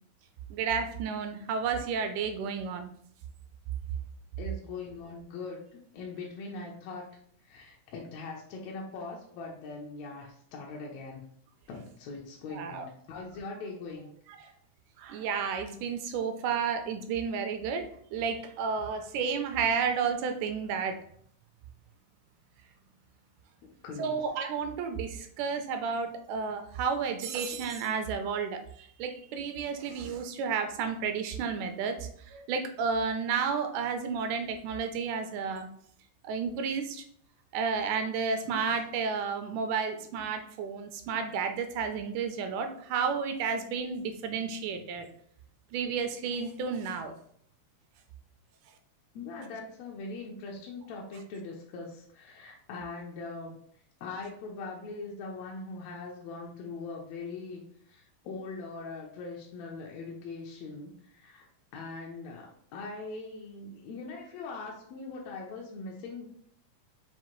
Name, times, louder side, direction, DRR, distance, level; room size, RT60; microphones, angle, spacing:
voice 1, 0.5-2.9 12.5-12.9 14.4-14.5 15.0-21.0 24.0-35.7 36.2-37.0 37.5-45.1 45.7-47.1, right 6 dB, 80° right, 7 dB, 1.9 m, -32 dB
voice 2, 4.4-5.6 5.9-7.2 7.4-11.3 11.7-14.1 23.8-24.2 49.1-53.6 54.0-66.3, left 3 dB, 80° left, -1 dB, 1.6 m, -41 dB
5.7 x 2.5 x 3.0 m, 0.64 s
omnidirectional pair, 3.7 m